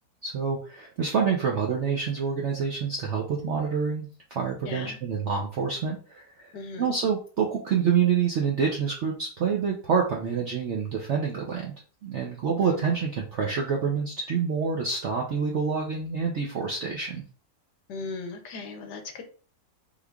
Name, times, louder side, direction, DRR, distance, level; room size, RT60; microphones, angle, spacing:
voice 1, 0.2-6.5 6.8-11.7 12.0-17.2, right 6 dB, 70° right, -1 dB, 0.6 m, -27 dB
voice 2, 4.7-5.0 6.5-6.9 12.6-12.9 17.9-19.2, left 4 dB, 75° left, 5 dB, 1.3 m, -37 dB
3.7 x 3.1 x 2.3 m, 0.40 s
omnidirectional pair, 1.9 m